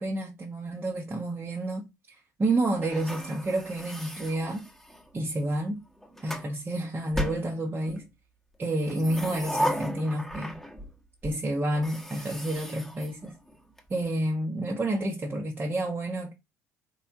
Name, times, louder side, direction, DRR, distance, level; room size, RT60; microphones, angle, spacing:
voice 1, 0.0-4.7 5.1-5.8 6.2-8.0 8.6-10.6 11.2-13.3 13.9-16.3, right 1 dB, 20° right, 0.9 m, -30 dB
sound 1, 2.8-5.1 5.8-6.5 7.1-8.1 8.8-10.9 11.2-11.3 11.7-13.8, equal, 5° left, 1.2 m, -35 dB
4.4 x 3.2 x 2.7 m
figure-of-eight pair, 55°, 9 cm